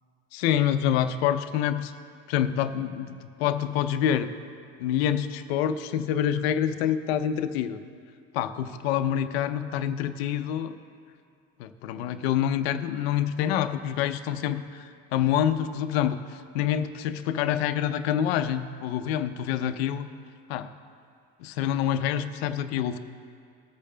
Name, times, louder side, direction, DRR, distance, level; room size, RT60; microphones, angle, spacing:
voice 1, 0.3-1.9 2.3-4.3 4.8-7.8 8.3-10.7 11.6-20.1 20.5-20.7 21.4-23.0, left 10 dB, 85° left, 10 dB, 0.7 m, -27 dB
19.5 x 8.5 x 2.2 m, 2.3 s
supercardioid pair, 100°, 30 cm